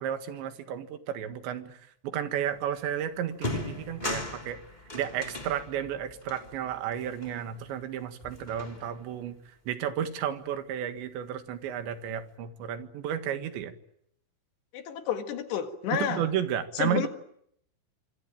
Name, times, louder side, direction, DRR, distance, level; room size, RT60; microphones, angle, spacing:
voice 1, 0.0-4.6 4.9-9.4 9.7-13.7 15.9-17.1, right 10 dB, 70° right, 3.9 m, -32 dB
sound 1, 2.7-2.9 3.3-7.9 8.2-9.2, left 1 dB, 10° left, 2.5 m, -39 dB
voice 2, 14.7-16.2 16.8-17.1, left 9 dB, 65° left, 3.8 m, -30 dB
26.0 x 25.5 x 9.0 m
omnidirectional pair, 5.6 m